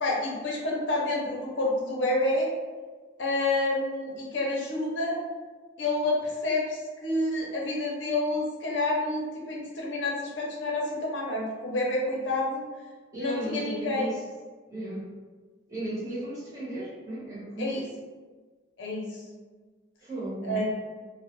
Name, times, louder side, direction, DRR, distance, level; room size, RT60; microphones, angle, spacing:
voice 1, 0.0-2.5 3.2-5.2 5.8-12.6 13.2-14.1 17.6-17.8 18.8-19.2 20.4-20.6, left 2 dB, 90° left, -2 dB, 0.6 m, -28 dB
voice 2, 13.1-14.2 14.7-15.1 15.7-17.8 20.0-20.6, right 1 dB, 20° right, -9 dB, 0.9 m, -35 dB
2.2 x 2.1 x 2.9 m, 1.4 s
head